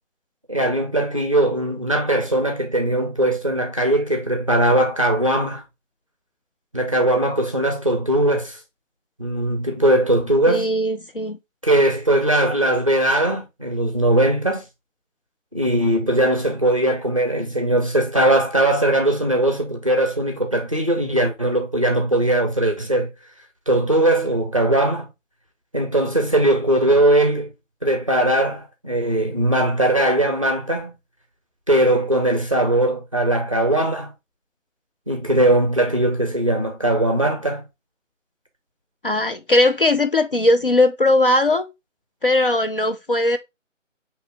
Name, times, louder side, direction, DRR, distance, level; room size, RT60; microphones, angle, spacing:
voice 1, 0.5-5.6 6.7-8.6 9.2-10.7 11.6-14.6 15.5-23.1 23.7-25.1 25.7-27.5 27.8-30.9 31.7-34.1 35.1-37.7, right 1 dB, 25° right, 0.5 m, -20 dB
voice 2, 10.5-11.4 39.0-41.7 42.2-43.4, left 1 dB, 45° left, 0.4 m, -19 dB
5.3 x 2.9 x 3.3 m
figure-of-eight pair, 155°, 39 cm